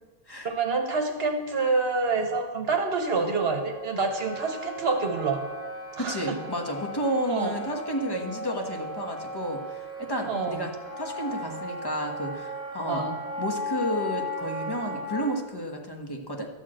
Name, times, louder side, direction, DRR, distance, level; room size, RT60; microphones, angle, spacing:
voice 1, 0.4-5.4 6.0-6.4 7.3-7.5 10.3-10.7 12.9-13.2, right 4 dB, 70° right, 4 dB, 1.2 m, -27 dB
Wind instrument woodwind instrument, 3.3-15.3, left 1 dB, 5° right, 2.0 m, -36 dB
voice 2, 6.0-13.0 13.4-16.5, equal, 20° left, 2 dB, 1.2 m, -31 dB
12.5 x 4.5 x 7.6 m, 1.3 s
omnidirectional pair, 1.1 m